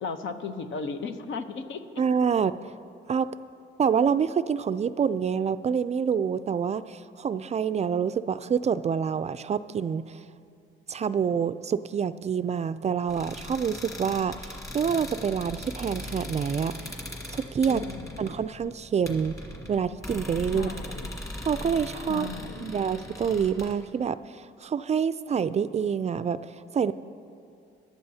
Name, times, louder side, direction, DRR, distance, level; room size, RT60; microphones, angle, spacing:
voice 1, 0.0-1.8 17.7-18.3 20.5-21.1 22.1-22.7, left 4 dB, 75° left, 8 dB, 0.9 m, -36 dB
voice 2, 2.0-2.7 3.1-3.3 3.8-10.2 10.9-16.9 17.3-17.9 18.2-19.3 19.7-20.7 21.5-22.3 22.6-26.9, right 7 dB, 35° right, 13 dB, 0.3 m, -27 dB
sound 1, 13.1-23.7, left 1 dB, 15° left, 2.1 m, -39 dB
22.5 x 11.5 x 2.8 m, 2.5 s
cardioid pair, 90°, 20 cm